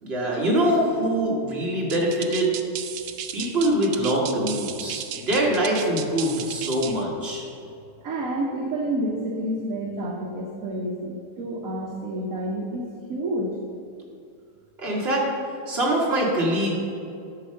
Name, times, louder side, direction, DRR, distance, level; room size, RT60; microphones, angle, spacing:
voice 1, 0.0-2.5 3.3-7.4 14.8-15.3 15.7-16.8, right 1 dB, 35° right, -3 dB, 1.8 m, -23 dB
sound 1, 1.9-7.0, right 10 dB, 80° right, 0.7 m, -35 dB
voice 2, 8.0-13.5, right 1 dB, 55° right, -1 dB, 1.2 m, -29 dB
11.0 x 4.1 x 6.4 m, 2.4 s
omnidirectional pair, 1.9 m